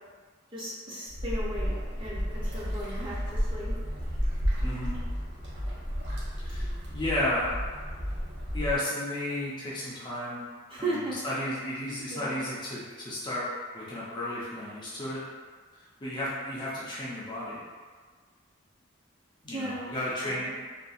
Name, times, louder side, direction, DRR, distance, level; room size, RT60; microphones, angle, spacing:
voice 1, 0.5-3.7 10.7-11.2 12.1-12.4 19.5-19.9 20.2-20.5, right 1 dB, 25° right, -8 dB, 0.6 m, -36 dB
sound 1, 1.1-8.8, equal, 60° right, 0.7 m, -32 dB
voice 2, 4.6-5.0 6.5-7.5 8.5-10.4 10.8-13.5 13.7-15.2 16.0-17.6 19.4-20.6, left 1 dB, 25° left, -8 dB, 0.5 m, -33 dB
2.6 x 2.3 x 2.4 m, 1.5 s
head